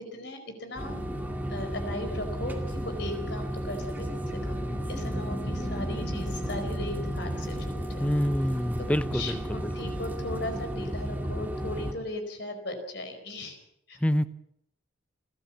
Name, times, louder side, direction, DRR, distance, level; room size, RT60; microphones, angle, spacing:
voice 1, 0.1-0.9 1.5-8.1 9.1-13.6 13.9-14.0, left 1 dB, 60° left, 6 dB, 4.6 m, -38 dB
sound 1, 0.8-11.9, equal, 10° right, 2.2 m, -33 dB
sound 2, 4.1-8.5, equal, 30° left, 2.7 m, -38 dB
voice 2, 8.0-9.7 14.0-14.2, equal, 5° left, 13 dB, 0.7 m, -27 dB
29.5 x 12.5 x 7.4 m, 0.76 s
head